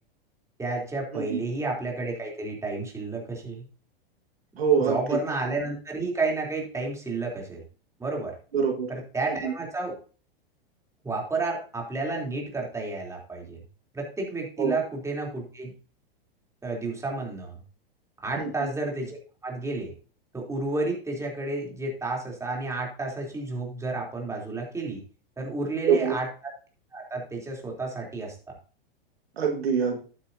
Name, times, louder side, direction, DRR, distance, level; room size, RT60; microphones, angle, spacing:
voice 1, 0.6-3.7 4.9-7.6 8.0-8.4 8.9-10.0 11.0-13.6 13.9-15.7 16.6-17.6 18.2-19.9 20.3-25.0 25.4-26.3 26.9-28.6, right 3 dB, 10° right, -1 dB, 3.4 m, -31 dB
voice 2, 4.6-5.2 8.5-8.9 9.3-9.5 14.6-14.8 18.4-18.7 25.9-26.2 29.4-30.0, right 6 dB, 90° right, 1 dB, 1.8 m, -25 dB
11.5 x 9.6 x 2.8 m, 0.38 s
hypercardioid pair, 115°, 30 cm